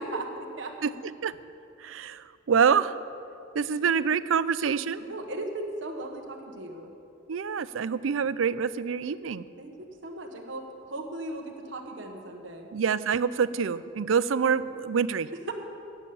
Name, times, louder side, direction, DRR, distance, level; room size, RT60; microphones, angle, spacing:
voice 1, 0.0-0.7 5.0-6.9 9.6-9.7 10.0-12.7 15.5-15.6, right 2 dB, 70° right, 2 dB, 1.3 m, -37 dB
voice 2, 0.8-1.4 1.8-3.0 3.5-5.0 7.3-9.4 12.7-15.3, right 6 dB, 90° right, 15 dB, 0.4 m, -26 dB
16.5 x 7.3 x 7.0 m, 2.5 s
head